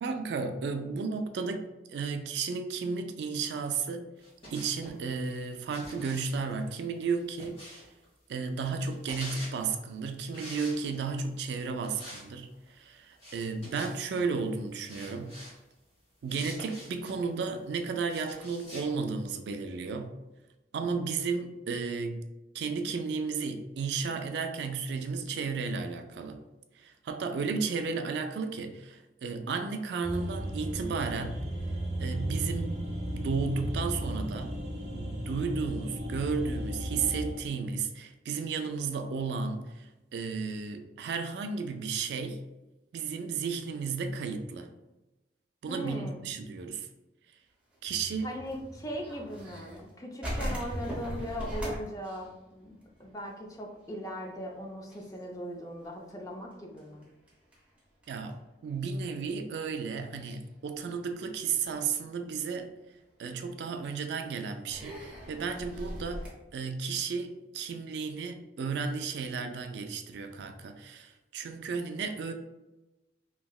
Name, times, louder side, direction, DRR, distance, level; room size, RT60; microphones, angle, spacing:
voice 1, 0.0-4.1 4.5-7.9 8.3-15.4 16.2-20.1 20.7-22.2 22.5-26.4 26.7-31.4 32.0-32.8 33.1-34.6 34.9-42.4 42.9-44.7 45.6-46.9 47.8-48.3 58.1-62.7 63.2-72.3, right 5 dB, 65° right, 0.3 m, -33 dB
sound 1, 4.2-5.0 5.7-8.0 8.8-9.6 10.3-11.2 11.8-12.3 12.5-12.7 13.2-14.2 14.9-15.5 16.3-17.2 18.1-18.9, equal, 35° left, 1.0 m, -45 dB
sound 2, 30.0-37.3, right 1 dB, 40° right, 0.9 m, -35 dB
voice 2, 45.7-46.1 48.2-57.0, equal, 20° left, 0.4 m, -39 dB
sound 3, 47.7-49.9 50.2-53.5 53.7-53.8 54.3-54.6 54.9-58.3 59.1-59.2 60.2-60.5 61.0-61.6 62.2-62.3 63.6-63.7 64.7-66.3, equal, 5° right, 0.8 m, -39 dB
3.1 x 2.7 x 2.3 m
head